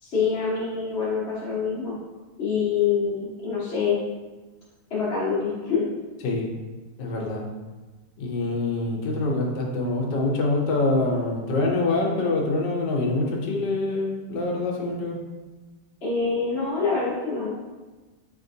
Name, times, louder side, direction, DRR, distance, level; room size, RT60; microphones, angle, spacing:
voice 1, 0.0-2.0 2.4-4.0 4.9-5.9 16.0-17.5, left 5 dB, 45° left, -8 dB, 1.0 m, -25 dB
voice 2, 7.0-7.4 8.2-15.2, left 2 dB, 80° left, -1 dB, 1.4 m, -25 dB
4.3 x 3.3 x 2.7 m, 1.2 s
omnidirectional pair, 1.9 m